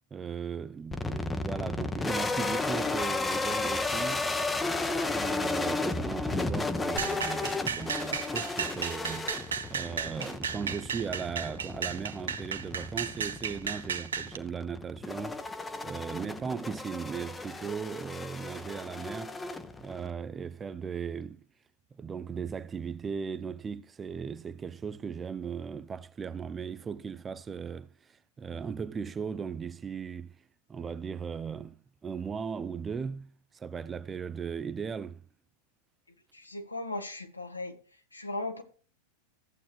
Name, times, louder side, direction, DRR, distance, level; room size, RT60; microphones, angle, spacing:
voice 1, 0.1-4.3 5.1-15.4 15.8-19.4 19.8-21.4 22.0-30.4 30.7-35.2, right 6 dB, 20° right, 0.5 m, -37 dB
sound 1, 0.9-20.1, left 3 dB, 10° left, 0.9 m, -34 dB
sound 2, 7.0-14.4, right 7 dB, 65° right, 0.8 m, -34 dB
voice 2, 36.3-37.8 38.1-38.6, left 2 dB, 85° left, 1.7 m, -37 dB
14.5 x 8.5 x 2.4 m
figure-of-eight pair, 90°, 0 cm